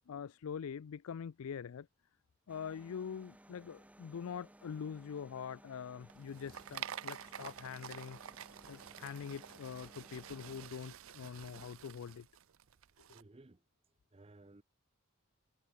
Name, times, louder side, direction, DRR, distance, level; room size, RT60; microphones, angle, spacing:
voice 1, 0.1-1.9 2.5-8.2 8.7-12.3, left 7 dB, 85° left, 0.4 m, -44 dB
sound 1, 2.5-10.7, right 1 dB, 5° right, 1.4 m, -60 dB
sound 2, 6.0-13.2, right 9 dB, 75° right, 0.6 m, -49 dB
voice 2, 13.1-13.6 14.1-14.6, right 2 dB, 25° right, 0.6 m, -58 dB
head